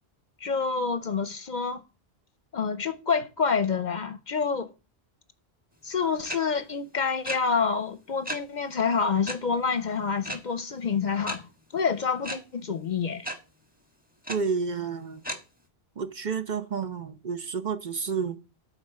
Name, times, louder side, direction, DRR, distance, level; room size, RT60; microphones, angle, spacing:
voice 1, 0.4-1.8 2.5-4.7 5.8-13.3, left 5 dB, 50° left, 0.7 m, -28 dB
sound 1, 6.2-6.4 7.2-7.4 8.2-8.4 9.2-9.4 10.2-10.4 11.2-11.4 12.2-12.4 13.2-13.3 14.2-14.3 15.2-15.4, equal, 10° right, 1.4 m, -32 dB
voice 2, 14.3-15.2 16.0-18.4, right 5 dB, 50° right, 0.9 m, -30 dB
9.2 x 4.0 x 7.3 m
omnidirectional pair, 1.1 m